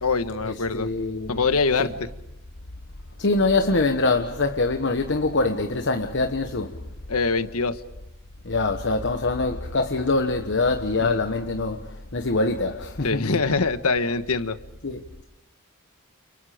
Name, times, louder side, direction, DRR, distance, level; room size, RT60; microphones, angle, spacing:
voice 1, 0.0-0.9 1.3-2.1 7.1-7.8 11.0-11.2 13.0-14.6, left 4 dB, 80° left, 1.4 m, -24 dB
voice 2, 0.7-1.4 1.8-1.9 3.2-6.7 8.4-11.8 12.1-13.3 14.8-15.0, left 3 dB, 55° left, 1.2 m, -24 dB
29.5 x 29.5 x 5.1 m
head